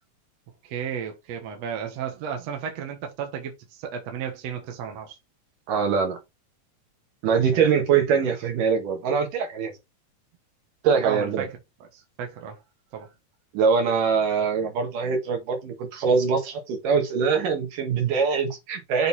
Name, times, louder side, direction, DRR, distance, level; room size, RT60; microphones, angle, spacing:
voice 1, 0.6-5.2 7.5-7.6 11.0-12.6 12.9-13.1, right 8 dB, 60° right, 2.2 m, -34 dB
voice 2, 5.7-6.2 7.2-9.7 10.8-11.4 13.5-19.1, right 6 dB, 75° right, 3.3 m, -23 dB
6.8 x 3.9 x 4.2 m
omnidirectional pair, 3.8 m